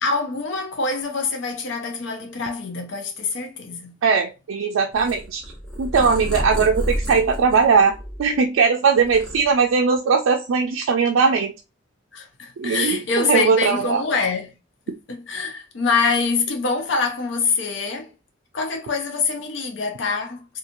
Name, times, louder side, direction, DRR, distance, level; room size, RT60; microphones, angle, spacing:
voice 1, 0.0-3.9 12.1-14.5 15.1-18.1 18.5-20.6, left 4 dB, 65° left, 0.6 m, -25 dB
voice 2, 4.0-5.5 5.8-11.5 12.6-14.0, right 5 dB, 85° right, 0.4 m, -19 dB
Purr, 4.9-8.5 8.9-9.9, equal, 5° left, 0.9 m, -30 dB
2.8 x 2.4 x 2.5 m
head